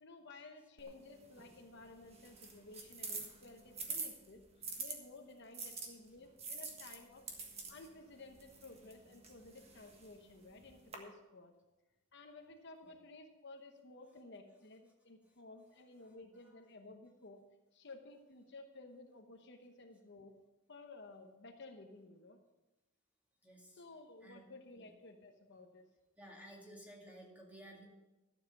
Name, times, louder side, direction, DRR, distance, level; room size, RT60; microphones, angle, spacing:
voice 1, 0.0-4.4 4.8-7.3 7.7-11.5 12.1-17.4 17.7-20.3 20.7-22.4 23.7-25.8, left 2 dB, 55° left, 4 dB, 0.9 m, -55 dB
sound 1, 0.8-5.0 5.5-11.0, right 4 dB, 30° right, 1.5 m, -47 dB
voice 2, 23.4-23.8 24.2-24.4 24.8-24.9 26.2-27.8, equal, 5° right, -2 dB, 2.1 m, -55 dB
12.5 x 7.4 x 5.8 m, 1.1 s
head